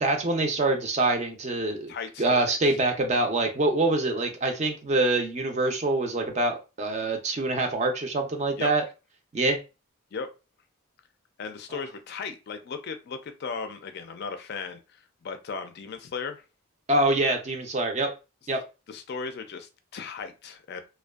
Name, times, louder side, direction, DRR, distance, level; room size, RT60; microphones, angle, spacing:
voice 1, 0.0-1.9 2.2-8.8 9.3-9.6 11.7-11.8 16.9-18.1 18.5-18.6, right 2 dB, 30° right, 0.4 m, -25 dB
voice 2, 1.9-2.5 8.6-8.7 10.1-10.3 11.4-16.4 18.9-20.8, left 5 dB, 50° left, 0.4 m, -36 dB
2.5 x 2.2 x 2.3 m
head